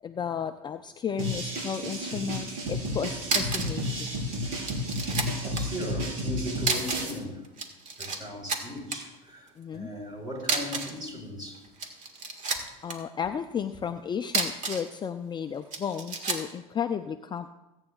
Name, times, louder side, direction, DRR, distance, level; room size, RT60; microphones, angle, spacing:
voice 1, 0.0-4.2 9.6-9.9 12.8-17.5, left 7 dB, 25° left, 7 dB, 0.5 m, -33 dB
sound 1, 1.2-7.1, equal, 70° right, 4.8 m, -32 dB
sound 2, 3.2-3.8 4.1-4.2 4.6-5.6 6.6-7.2 7.4-8.2 8.5-9.0 10.4-11.0 11.6-12.9 14.2-14.9 15.7-16.5, right 4 dB, 40° right, 1.8 m, -30 dB
voice 2, 5.1-7.5 8.0-11.7, left 1 dB, 20° right, 0 dB, 4.5 m, -38 dB
21.5 x 8.8 x 2.4 m, 1.0 s
hypercardioid pair, 85°, 19 cm